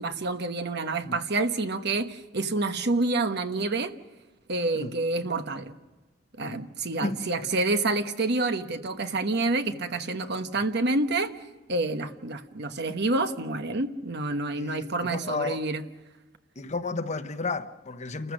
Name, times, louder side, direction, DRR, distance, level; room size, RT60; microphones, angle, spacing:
voice 1, 0.0-3.9 4.5-5.7 6.4-11.3 11.7-15.8, right 2 dB, 60° right, 1.2 m, -28 dB
voice 2, 14.5-15.6 16.6-18.3, left 3 dB, 40° left, 0.9 m, -33 dB
29.5 x 14.5 x 6.4 m
head